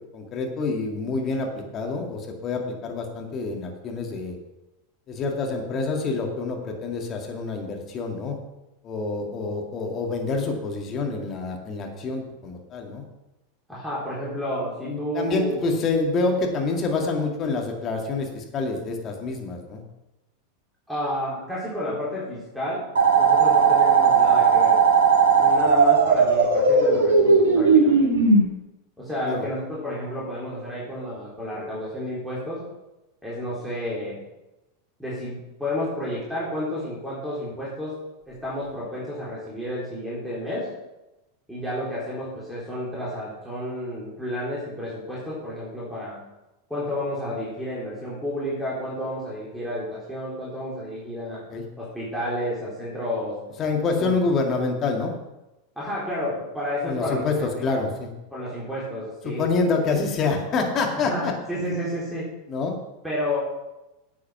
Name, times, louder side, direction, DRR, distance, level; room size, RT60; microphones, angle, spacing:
voice 1, 0.1-4.4 5.1-8.4 8.8-13.0 14.9-19.8 29.3-29.4 51.5-51.6 53.6-55.1 56.9-58.1 59.2-61.3 62.5-62.7, left 3 dB, 35° left, 2 dB, 2.2 m, -27 dB
voice 2, 13.7-15.7 20.9-22.8 23.1-24.8 25.3-28.1 29.0-32.6 33.2-34.2 35.0-37.9 38.3-40.7 41.5-46.2 46.7-51.4 51.8-53.4 54.0-54.2 55.8-57.8 58.3-59.4 60.9-62.3 63.0-63.4, left 1 dB, ahead, -7 dB, 4.0 m, -31 dB
sound 1, 22.9-28.4, right 4 dB, 65° right, 2.7 m, -17 dB
9.5 x 8.4 x 5.7 m, 0.97 s
figure-of-eight pair, 90°, 0 cm